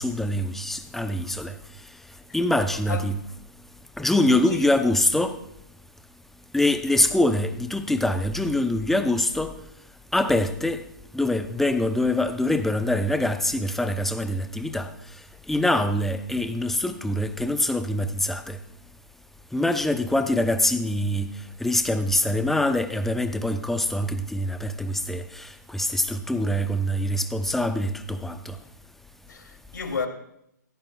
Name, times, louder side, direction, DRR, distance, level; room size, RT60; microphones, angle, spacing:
voice 1, 0.0-1.6 2.3-3.1 4.0-5.4 6.5-9.5 10.1-10.8 11.1-14.9 15.5-18.6 19.5-21.3 21.6-28.6, left 1 dB, 5° left, 0.6 m, -24 dB
voice 2, 2.7-3.0 4.4-4.7 29.3-30.1, left 5 dB, 80° left, 2.7 m, -32 dB
17.5 x 15.0 x 2.3 m
hypercardioid pair, 135°, 10 cm